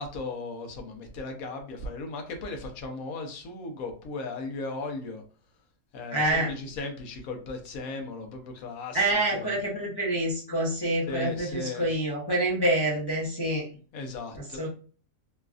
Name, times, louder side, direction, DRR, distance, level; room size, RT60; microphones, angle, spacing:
voice 1, 0.0-5.2 5.9-9.5 11.1-11.8 13.9-14.6, left 3 dB, 75° left, 4 dB, 1.1 m, -37 dB
voice 2, 6.1-6.5 8.9-13.7 14.3-14.7, right 1 dB, 40° left, -6 dB, 0.3 m, -27 dB
3.2 x 2.3 x 2.4 m, 0.41 s
omnidirectional pair, 1.5 m